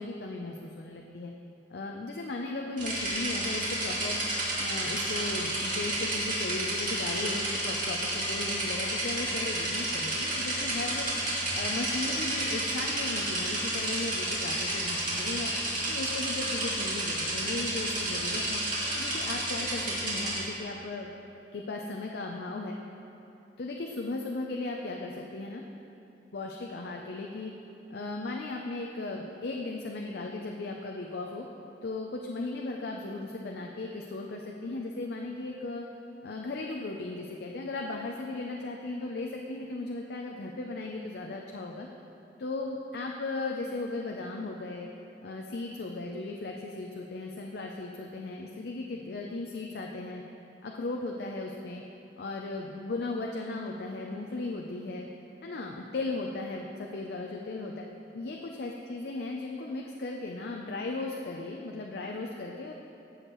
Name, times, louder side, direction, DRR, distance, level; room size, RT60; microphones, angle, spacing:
voice 1, 0.0-1.3 1.7-4.2 4.6-11.1 11.5-15.5 15.9-18.6 18.9-21.1 21.5-22.8 23.6-25.6 26.3-27.5 27.9-31.4 31.8-35.9 36.2-41.9 42.4-44.9 45.2-50.2 50.6-51.8 52.2-55.1 55.4-57.8 58.1-62.7, left 2 dB, 60° left, 1 dB, 0.5 m, -36 dB
sound 1, 2.8-20.4, right 1 dB, 50° right, 2.2 m, -31 dB
14.0 x 6.4 x 3.0 m, 2.8 s
head